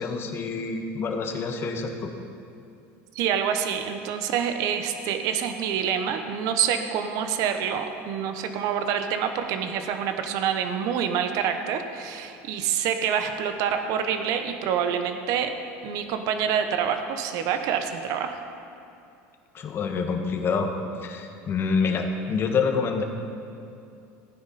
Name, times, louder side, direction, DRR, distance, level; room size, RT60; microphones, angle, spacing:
voice 1, 0.0-2.1 19.5-20.7 21.0-23.0, left 5 dB, 35° left, 4 dB, 1.3 m, -27 dB
voice 2, 3.1-15.6 15.8-18.4, right 8 dB, 60° right, 7 dB, 1.0 m, -27 dB
15.5 x 9.6 x 4.2 m, 2.6 s
supercardioid pair, 120°, 7 cm